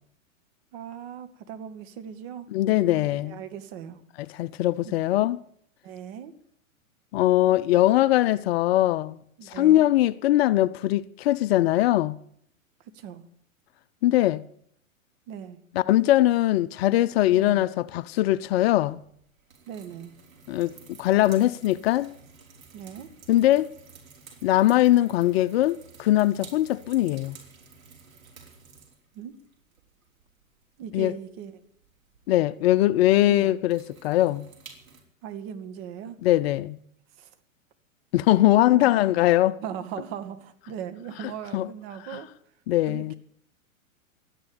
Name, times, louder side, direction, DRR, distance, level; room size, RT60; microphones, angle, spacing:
voice 1, 0.7-4.0 4.8-4.9 5.8-6.3 9.4-9.9 12.9-13.3 15.3-15.6 17.3-17.6 19.7-20.1 22.7-23.1 29.1-29.4 30.8-31.5 33.3-33.5 35.2-36.2 37.2-37.3 38.6-38.9 39.5-42.3 42.9-43.1, right 8 dB, 45° right, 2.1 m, -39 dB
voice 2, 2.5-3.4 4.2-5.4 7.1-9.2 9.5-12.1 14.0-14.4 15.7-19.0 20.5-22.1 23.3-23.7 24.4-27.4 30.9-31.1 32.3-34.5 36.2-36.8 38.1-39.6 41.5-41.7 42.1-42.2 42.7-43.1, left 15 dB, 50° left, 0.7 m, -21 dB
sound 1, 18.4-35.0, right 5 dB, 75° right, 4.9 m, -52 dB
13.5 x 10.0 x 8.9 m
hypercardioid pair, 120°, 41 cm